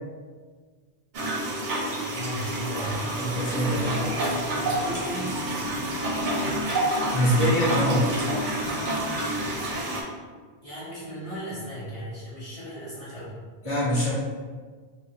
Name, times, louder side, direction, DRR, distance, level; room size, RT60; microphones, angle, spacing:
sound 1, 1.1-10.0, right 1 dB, 60° right, 0.6 m, -28 dB
voice 1, 2.1-2.9 3.8-5.4 10.6-13.3, equal, 35° left, -10 dB, 0.9 m, -36 dB
voice 2, 2.7-3.9 7.1-8.1 13.6-14.1, equal, 15° left, -7 dB, 0.8 m, -24 dB
Mechanisms, 2.8-9.8, left 2 dB, 65° left, 0.8 m, -41 dB
2.4 x 2.2 x 3.1 m, 1.5 s
omnidirectional pair, 1.1 m